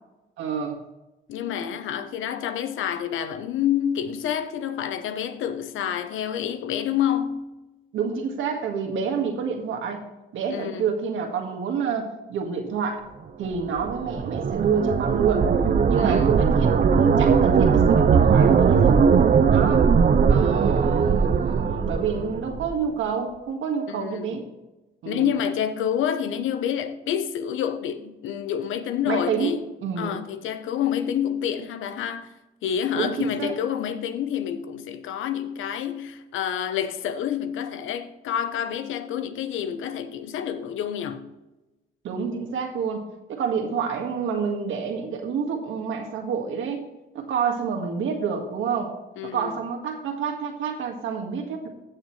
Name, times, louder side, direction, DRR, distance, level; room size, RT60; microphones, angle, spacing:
voice 1, 0.4-0.8 7.9-10.0 10.3-13.0 13.4-15.5 15.9-19.0 19.5-19.8 20.3-24.5 25.0-25.3 29.1-30.2 32.9-33.5 42.0-43.0 43.3-46.8 47.1-48.9 49.2-51.7, right 6 dB, 80° right, 1.9 m, -28 dB
voice 2, 1.3-7.4 10.5-10.8 16.0-16.3 23.9-24.3 25.1-29.7 30.0-32.3 32.6-41.3 49.2-49.6, left 9 dB, 85° left, 0.9 m, -28 dB
sound 1, 13.5-22.8, right 6 dB, 45° right, 0.8 m, -19 dB
15.0 x 6.7 x 3.2 m
cardioid pair, 90°, 20 cm